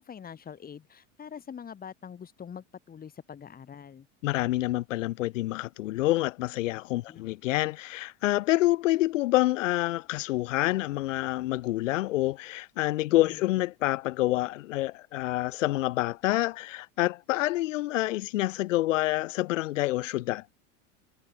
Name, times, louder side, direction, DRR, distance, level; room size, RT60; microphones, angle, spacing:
voice 1, 0.0-4.1 7.1-7.2 13.1-13.4, left 7 dB, 25° left, 2.0 m, -44 dB
voice 2, 4.2-20.5, left 17 dB, 90° left, 0.6 m, -27 dB
supercardioid pair, 110°, 37 cm